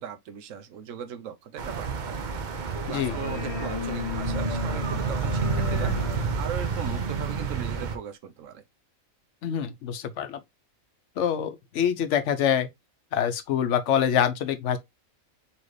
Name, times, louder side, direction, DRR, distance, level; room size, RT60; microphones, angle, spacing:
voice 1, 0.0-2.2 2.9-5.9 6.4-8.6, right 8 dB, 70° right, 1.0 m, -38 dB
sound 1, 1.6-8.0, right 4 dB, 50° right, 0.6 m, -29 dB
sound 2, 2.6-7.8, left 3 dB, 35° left, 0.6 m, -36 dB
voice 2, 9.4-10.4 11.2-12.7 13.1-14.8, left 9 dB, 65° left, 0.9 m, -25 dB
4.1 x 2.9 x 3.1 m
omnidirectional pair, 1.4 m